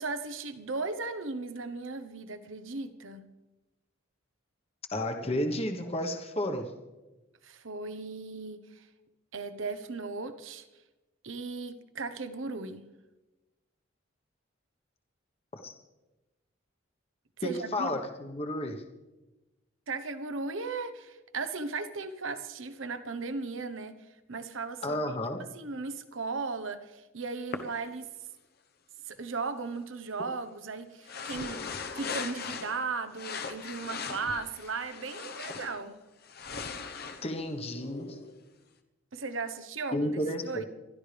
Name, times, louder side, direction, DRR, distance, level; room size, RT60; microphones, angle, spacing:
voice 1, 0.0-3.3 7.4-8.9 9.3-10.7 11.2-12.9 17.4-18.0 19.9-23.9 24.3-25.0 25.5-28.1 29.0-31.6 32.0-35.9 39.1-40.7, right 4 dB, 75° right, 9 dB, 1.1 m, -36 dB
voice 2, 4.9-6.7 15.6-15.7 17.4-18.8 24.8-25.4 37.2-38.2 39.9-40.7, left 1 dB, 30° left, 4 dB, 1.2 m, -32 dB
sound 1, 27.5-27.6 31.0-32.8 33.1-35.8 36.2-38.4, left 5 dB, 50° left, 1.1 m, -39 dB
28.0 x 12.0 x 3.5 m, 1.1 s
head